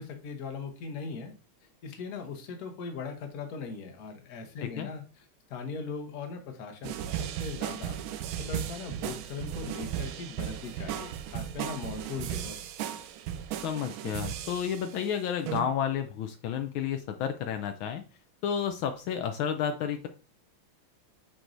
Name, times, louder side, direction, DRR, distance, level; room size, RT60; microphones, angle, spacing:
voice 1, 0.0-1.3 1.8-5.2 5.5-8.0 8.4-12.6, left 4 dB, 55° left, 4 dB, 1.4 m, -39 dB
sound 1, 6.8-15.0 15.5-15.6, right 11 dB, 80° right, 1.4 m, -36 dB
voice 2, 13.6-18.0 18.4-20.1, left 8 dB, 80° left, 7 dB, 1.4 m, -31 dB
7.9 x 4.7 x 2.6 m, 0.35 s
omnidirectional pair, 2.3 m